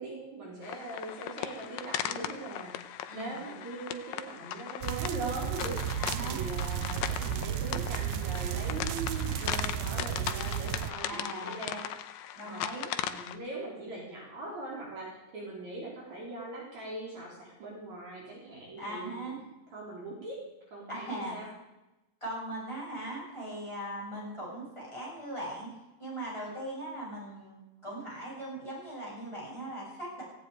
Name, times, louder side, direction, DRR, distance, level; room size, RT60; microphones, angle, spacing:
voice 1, 0.0-11.9 12.4-12.6 13.1-19.3 19.7-20.4 20.7-21.5, right 2 dB, 55° right, -3 dB, 5.0 m, -41 dB
sound 1, 0.6-13.4, left 11 dB, 80° left, 2.5 m, -38 dB
voice 2, 3.1-3.4 6.0-6.4 11.0-11.6 12.3-12.9 18.8-19.4 20.9-21.4 22.2-25.7 26.0-30.2, right 1 dB, 5° left, -5 dB, 7.7 m, -39 dB
sound 2, 4.8-10.9, right 10 dB, 90° right, 1.5 m, -33 dB
17.5 x 16.0 x 5.0 m, 1.0 s
omnidirectional pair, 4.0 m